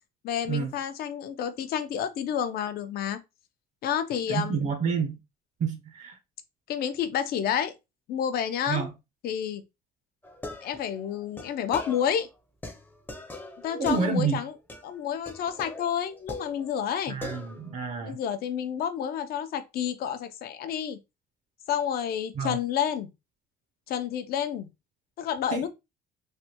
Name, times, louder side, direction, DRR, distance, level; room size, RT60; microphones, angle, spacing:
voice 1, 0.2-3.2 3.8-4.7 6.7-7.7 8.1-8.9 9.2-9.6 10.6-12.3 13.6-14.5 14.8-17.2 18.0-21.0 21.7-23.1 23.9-24.7 25.2-25.7, left 8 dB, 65° left, 0.5 m, -29 dB
voice 2, 4.3-5.2 5.6-6.2 8.7-8.9 13.8-14.4 17.1-18.2 22.4-22.6 25.5-25.7, right 6 dB, 45° right, 0.5 m, -28 dB
sound 1, 10.2-12.3 12.6-14.4 14.7-15.0 15.3-16.9 17.2-17.8, left 1 dB, 10° left, 0.6 m, -41 dB
3.3 x 2.1 x 2.8 m
cardioid pair, 110°, 17 cm